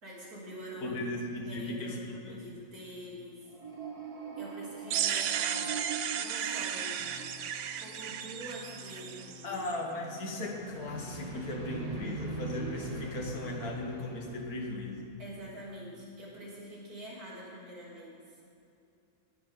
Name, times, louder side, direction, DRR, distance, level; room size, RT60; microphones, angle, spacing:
voice 1, 0.0-1.0 1.5-3.4 4.4-7.2 7.5-9.6 15.2-18.2, right 1 dB, 90° right, -6 dB, 3.8 m, -46 dB
voice 2, 0.8-2.4 9.4-15.1, left 2 dB, 85° left, 1 dB, 2.0 m, -37 dB
sound 1, 3.4-7.8 10.4-15.4, right 3 dB, 30° right, 1.2 m, -42 dB
sound 2, 4.9-9.8, right 9 dB, 65° right, 0.8 m, -34 dB
sound 3, 7.0-14.6, left 6 dB, 55° left, 1.4 m, -54 dB
18.5 x 10.0 x 3.8 m, 2.6 s
omnidirectional pair, 1.5 m